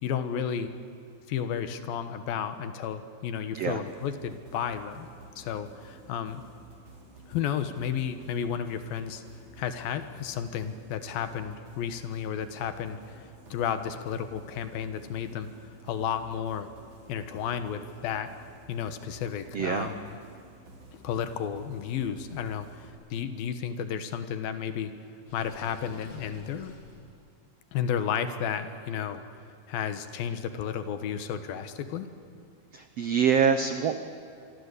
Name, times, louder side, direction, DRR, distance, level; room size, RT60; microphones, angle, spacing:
voice 1, 0.0-0.7 1.3-5.1 5.4-6.4 7.3-9.2 9.6-13.2 13.5-15.5 15.8-16.7 17.1-18.3 18.7-20.2 20.9-24.9 25.3-26.7 27.7-29.2 29.7-32.1, left 8 dB, 75° left, 9 dB, 3.1 m, -32 dB
sound 1, 3.7-22.9, right 2 dB, 50° right, 5.4 m, -52 dB
voice 2, 19.5-19.9 32.7-34.0, right 7 dB, 80° right, 8 dB, 1.4 m, -25 dB
Water / Sink (filling or washing), 25.3-27.0, left 1 dB, 40° left, 5.1 m, -48 dB
26.5 x 23.5 x 8.4 m, 2.3 s
omnidirectional pair, 4.3 m